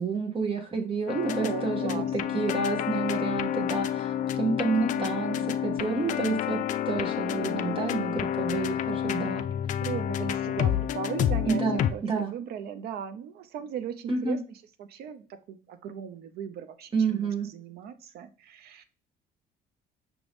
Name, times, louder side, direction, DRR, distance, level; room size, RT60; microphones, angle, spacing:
voice 1, 0.0-6.6 6.9-9.5 11.5-12.3 14.1-14.4 16.9-17.5, right 4 dB, 30° right, 3 dB, 0.8 m, -29 dB
sound 1, 1.1-11.9, left 10 dB, 50° left, 0.4 m, -29 dB
voice 2, 1.2-2.4 4.9-5.6 9.8-18.8, right 8 dB, 70° right, 12 dB, 0.6 m, -38 dB
5.9 x 2.6 x 3.3 m, 0.37 s
cardioid pair, 110°, 17 cm